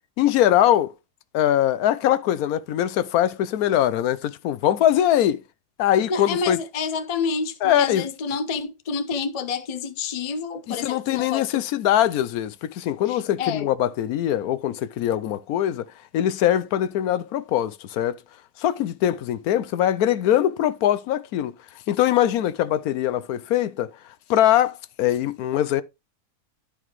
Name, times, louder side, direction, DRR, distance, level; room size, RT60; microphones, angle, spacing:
voice 1, 0.2-0.9 1.3-5.4 5.8-6.6 7.6-8.0 10.7-15.9 16.1-18.2 18.6-21.5 21.9-23.9 24.3-25.8, left 11 dB, 75° left, 1.0 m, -22 dB
voice 2, 6.1-11.7 13.1-13.7, left 5 dB, 50° left, 0.4 m, -28 dB
11.0 x 4.9 x 3.1 m
omnidirectional pair, 1.7 m